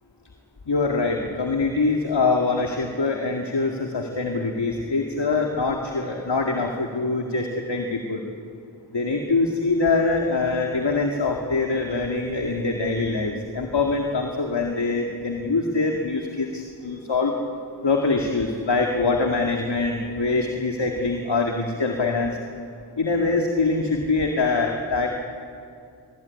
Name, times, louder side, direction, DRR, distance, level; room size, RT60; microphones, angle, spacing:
voice 1, 0.7-8.2 8.9-17.3 17.8-22.4 23.0-25.1, left 3 dB, 70° left, 1 dB, 2.2 m, -24 dB
24.0 x 22.0 x 9.6 m, 2.5 s
wide cardioid pair, 50°, 43 cm